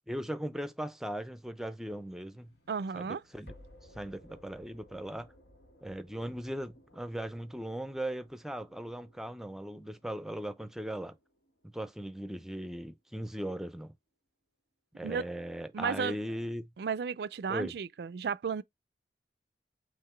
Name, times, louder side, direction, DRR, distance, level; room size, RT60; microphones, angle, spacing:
voice 1, 0.1-2.5 2.9-3.5 3.9-5.3 5.8-11.2 11.7-13.9 15.0-16.7 17.5-17.8, equal, ahead, 0.5 m, -38 dB
sound 1, 1.6-12.7, equal, 85° left, 1.8 m, -60 dB
voice 2, 2.7-3.2 15.0-15.2 15.7-16.1 16.8-18.6, right 6 dB, 65° right, 0.3 m, -33 dB
5.8 x 2.5 x 3.1 m
head